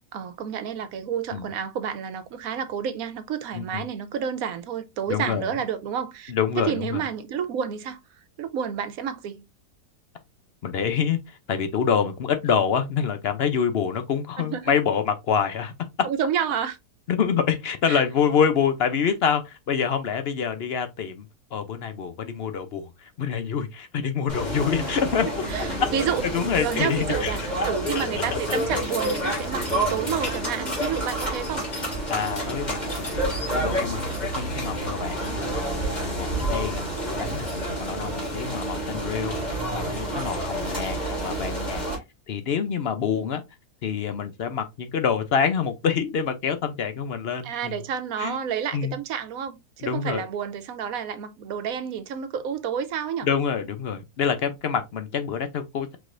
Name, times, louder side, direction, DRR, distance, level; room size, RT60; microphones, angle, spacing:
voice 1, 0.1-8.0 8.4-9.4 14.4-14.7 16.0-16.8 17.9-18.0 24.9-25.0 25.5-26.2 26.6-31.7 38.4-38.7 47.4-53.3, right 8 dB, 70° right, 1.1 m, -30 dB
voice 2, 3.5-3.8 5.1-5.5 6.3-7.0 10.6-15.7 17.1-25.4 26.3-27.3 27.6-27.7 27.9-28.6 32.1-37.5 37.8-41.8 42.3-43.4 43.8-47.8 48.2-48.4 48.7-49.0 49.8-50.2 53.2-56.0, left 7 dB, 60° left, 0.6 m, -26 dB
sound 1, 24.3-42.0, right 1 dB, 25° left, 2.6 m, -29 dB
4.8 x 4.0 x 2.5 m
omnidirectional pair, 1.6 m